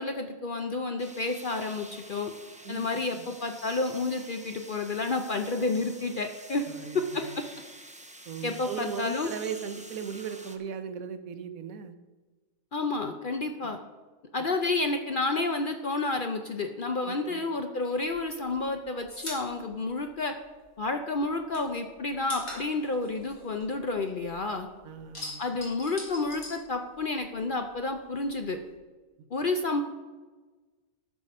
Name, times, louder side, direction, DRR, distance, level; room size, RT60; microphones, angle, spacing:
voice 1, 0.0-2.3 2.7-6.6 6.9-7.2 8.4-9.3 12.7-13.8 14.3-20.3 20.8-24.7 25.4-28.6 29.3-29.8, left 3 dB, 50° left, 5 dB, 0.6 m, -30 dB
sound 1, 1.0-10.6, right 1 dB, 10° right, 0.4 m, -48 dB
voice 2, 2.6-3.3 6.7-7.4 8.3-12.0 13.6-13.7 17.0-17.4 24.8-25.4, right 7 dB, 75° right, 10 dB, 1.2 m, -38 dB
sound 2, 18.0-20.8 21.1-24.4 24.7-27.3 27.6-28.7, left 1 dB, 70° left, 3.2 m, -42 dB
12.0 x 5.8 x 5.3 m, 1.3 s
omnidirectional pair, 1.5 m